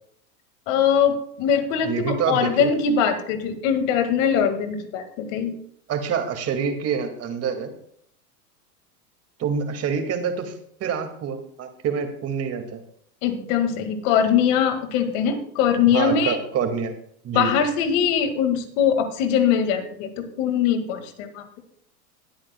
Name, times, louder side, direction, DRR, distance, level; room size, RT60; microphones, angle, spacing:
voice 1, 0.7-5.5 13.2-16.4 17.3-21.4, left 7 dB, 55° left, 7 dB, 2.0 m, -22 dB
voice 2, 1.8-2.7 5.9-7.7 9.4-10.5 10.8-12.8 15.9-16.9 17.2-17.5, right 6 dB, 30° right, 5 dB, 2.1 m, -26 dB
20.0 x 8.7 x 2.2 m, 0.66 s
hypercardioid pair, 110°, 45 cm